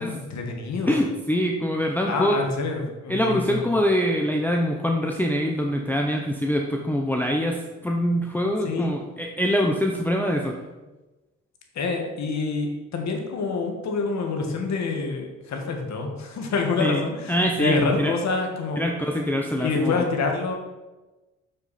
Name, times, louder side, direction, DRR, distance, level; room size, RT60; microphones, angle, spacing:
voice 1, 0.0-1.1 2.1-3.7 8.6-8.9 11.7-18.8 19.6-20.5, left 4 dB, 65° left, 3 dB, 1.6 m, -27 dB
voice 2, 0.9-2.4 3.1-10.6 16.8-17.0 17.3-18.1 18.8-20.0, equal, 5° left, 1 dB, 0.7 m, -24 dB
7.0 x 6.4 x 4.2 m, 1.1 s
cardioid pair, 90°, 30 cm